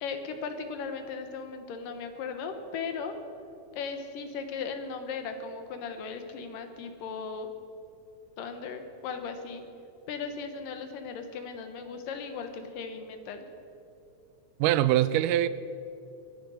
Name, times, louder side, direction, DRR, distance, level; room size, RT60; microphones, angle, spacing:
voice 1, 0.0-3.2 3.7-7.5 8.4-9.6 10.1-13.5, left 5 dB, 90° left, 7 dB, 2.9 m, -37 dB
voice 2, 14.6-15.5, right 13 dB, 85° right, 15 dB, 2.1 m, -23 dB
22.0 x 9.7 x 6.4 m, 2.7 s
omnidirectional pair, 3.7 m